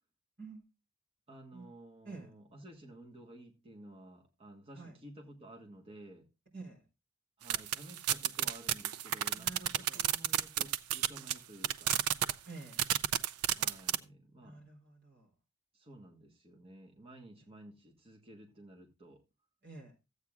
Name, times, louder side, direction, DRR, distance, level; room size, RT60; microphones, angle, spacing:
voice 1, 1.3-6.3 7.4-12.0 13.5-14.6 15.7-19.2, right 1 dB, 25° right, 1.5 m, -53 dB
voice 2, 6.5-6.8 9.3-10.0 12.5-12.8 14.4-15.3 19.6-19.9, right 3 dB, 50° right, 4.1 m, -49 dB
sound 1, 7.5-11.3 11.6-12.3 12.7-14.0, right 11 dB, 90° right, 0.5 m, -30 dB
14.0 x 8.4 x 2.4 m
head